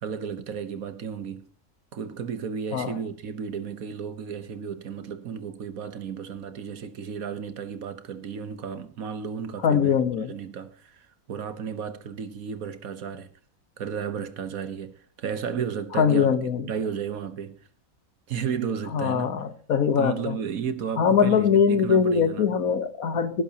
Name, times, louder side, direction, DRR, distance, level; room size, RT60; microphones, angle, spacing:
voice 1, 0.0-1.5 1.9-10.0 10.3-13.3 13.8-17.6 18.3-19.3 20.0-22.5, right 7 dB, 80° right, 1.6 m, -33 dB
voice 2, 9.6-10.3 16.0-16.6 18.9-20.4 21.0-23.4, left 7 dB, 85° left, 1.7 m, -22 dB
18.5 x 11.0 x 2.9 m
omnidirectional pair, 1.4 m